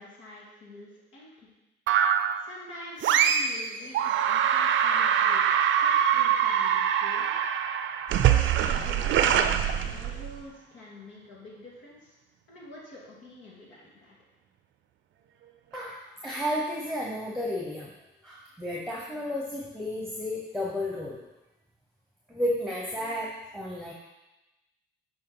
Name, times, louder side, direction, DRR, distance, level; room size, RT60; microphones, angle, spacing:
voice 1, 0.0-1.5 2.4-5.5 5.8-7.3 8.1-12.2 12.5-14.1, left 1 dB, 80° left, -4 dB, 2.3 m, -46 dB
sound 1, 1.9-2.4 3.0-3.6 3.9-10.4, right 9 dB, 75° right, 0.5 m, -24 dB
voice 2, 15.7-17.9 18.2-21.2 22.3-23.9, left 1 dB, ahead, -3 dB, 1.1 m, -32 dB
7.4 x 4.5 x 4.0 m, 0.99 s
cardioid pair, 90°, 20 cm